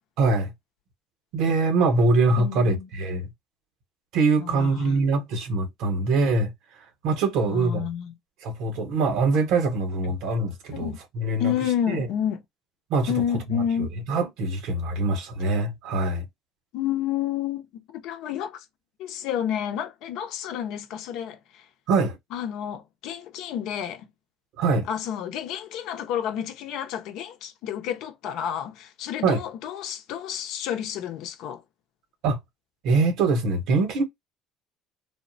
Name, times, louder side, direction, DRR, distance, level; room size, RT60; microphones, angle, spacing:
voice 1, 0.2-0.5 1.3-3.3 4.1-6.5 7.0-7.8 8.4-11.5 11.9-12.1 12.9-13.1 13.8-16.2 21.9-22.2 24.6-24.9 29.2-29.4 32.2-32.4 32.8-34.0, right 3 dB, 70° right, 1.0 m, -23 dB
voice 2, 2.4-2.9 4.4-5.0 7.4-8.1 10.7-11.0 11.4-12.4 13.1-13.9 16.7-18.7 19.0-21.7 22.3-24.1 24.9-31.6, left 9 dB, 70° left, 0.7 m, -30 dB
3.5 x 2.1 x 2.6 m
supercardioid pair, 75°, 0 cm